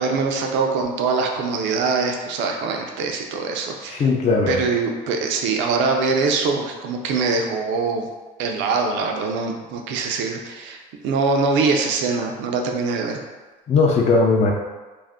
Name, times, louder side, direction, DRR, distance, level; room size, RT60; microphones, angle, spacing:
voice 1, 0.0-4.1 4.5-8.0 8.4-13.2, right 4 dB, 70° right, 2 dB, 0.5 m, -23 dB
voice 2, 3.9-4.6 13.7-14.5, left 3 dB, 35° left, -1 dB, 0.5 m, -18 dB
2.5 x 2.1 x 3.4 m, 1.2 s
supercardioid pair, 100°, 19 cm